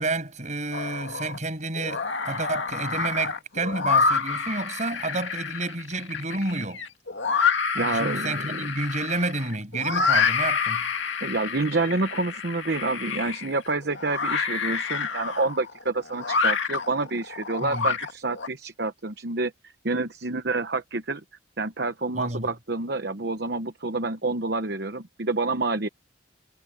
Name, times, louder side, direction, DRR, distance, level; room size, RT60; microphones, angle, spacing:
voice 1, 0.0-6.9 7.8-10.9 17.6-17.9 22.1-22.5, right 2 dB, 35° right, 7.5 m, -30 dB
sound 1, 0.7-1.4 1.8-18.5, left 5 dB, 70° left, 2.2 m, -28 dB
voice 2, 7.7-8.6 11.2-21.2 21.6-25.9, right 3 dB, 55° right, 1.0 m, -28 dB
head